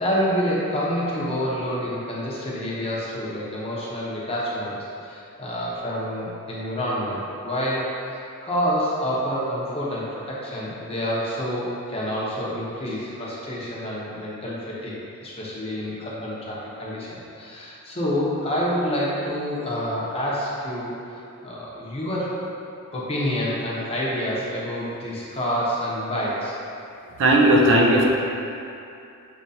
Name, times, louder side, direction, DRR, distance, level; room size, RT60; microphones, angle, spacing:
voice 1, 0.0-4.8 5.0-14.9 15.2-22.3 22.9-26.6, equal, 25° left, -6 dB, 0.8 m, -28 dB
voice 2, 27.2-28.0, right 1 dB, 60° right, -2 dB, 0.6 m, -16 dB
6.5 x 2.9 x 2.7 m, 2.6 s
head